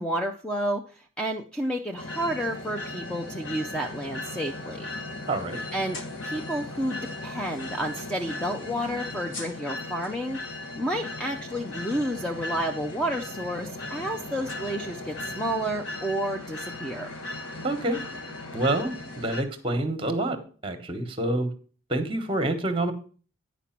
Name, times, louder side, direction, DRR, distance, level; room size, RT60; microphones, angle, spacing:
voice 1, 0.0-4.9 5.7-6.0 6.2-10.4 10.8-17.1, right 1 dB, 5° left, 3 dB, 0.5 m, -30 dB
sound 1, 2.0-19.4, left 2 dB, 55° left, 1.3 m, -37 dB
sound 2, 3.5-19.8, left 3 dB, 80° left, 1.2 m, -49 dB
voice 2, 5.3-5.6 17.6-18.1 18.5-21.5 21.9-22.9, right 1 dB, 25° right, 7 dB, 1.2 m, -27 dB
9.9 x 5.0 x 5.9 m, 0.40 s
head